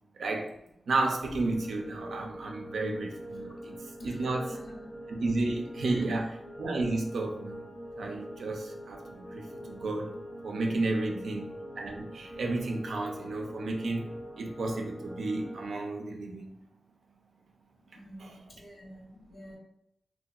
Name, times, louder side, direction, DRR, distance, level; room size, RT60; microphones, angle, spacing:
voice 1, 0.2-0.5 0.9-3.7 4.0-4.5 5.1-6.3 6.6-7.6 8.0-10.1 10.4-11.5 11.8-14.1 14.4-16.5 18.2-18.3, right 2 dB, 90° right, 2 dB, 0.4 m, -32 dB
sound 1, 1.2-15.7, right 1 dB, 25° left, 0.6 m, -44 dB
voice 2, 4.0-4.9 5.8-6.3 11.0-11.4 17.9-19.6, left 1 dB, 75° left, -3 dB, 0.9 m, -48 dB
2.7 x 2.2 x 2.3 m, 0.80 s
cardioid pair, 55°, 0 cm